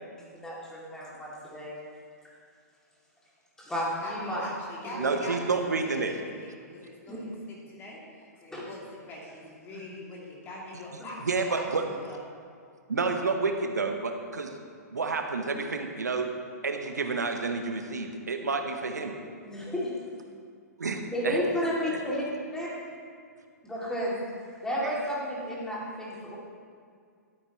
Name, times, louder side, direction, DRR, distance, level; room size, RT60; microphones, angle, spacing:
voice 1, 0.3-1.7 3.6-4.4 4.9-5.1 7.1-7.2 8.5-8.6 9.7-9.8 19.4-19.9 21.1-22.2 22.5-22.7 23.6-24.2 24.6-26.4, equal, 5° left, -6 dB, 2.4 m, -32 dB
voice 2, 4.0-12.2, left 1 dB, 25° left, -4 dB, 2.6 m, -43 dB
voice 3, 5.0-6.1 11.3-11.8 12.9-14.5 14.9-16.3 16.6-19.2 20.8-21.4 24.8-24.9, right 4 dB, 80° right, 5 dB, 0.8 m, -29 dB
13.0 x 8.1 x 3.0 m, 2.2 s
figure-of-eight pair, 115°, 9 cm